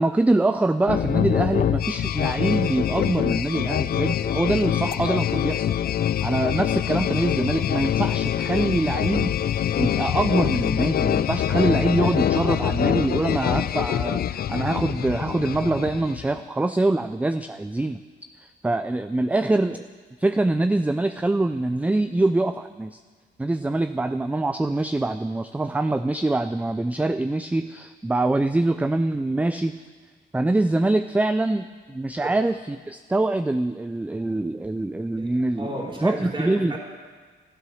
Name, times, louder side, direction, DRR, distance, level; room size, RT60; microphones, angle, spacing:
voice 1, 0.0-5.7 6.2-9.3 9.7-18.0 18.4-19.9 20.2-23.0 23.4-29.8 30.3-35.7 36.0-36.8, right 2 dB, 5° right, 10 dB, 0.4 m, -24 dB
sound 1, 0.9-16.4, left 10 dB, 50° left, 0.5 m, -24 dB
voice 2, 35.2-36.8, right 1 dB, 25° right, 0 dB, 3.0 m, -33 dB
12.5 x 11.0 x 6.4 m, 1.5 s
cardioid pair, 90°, 20 cm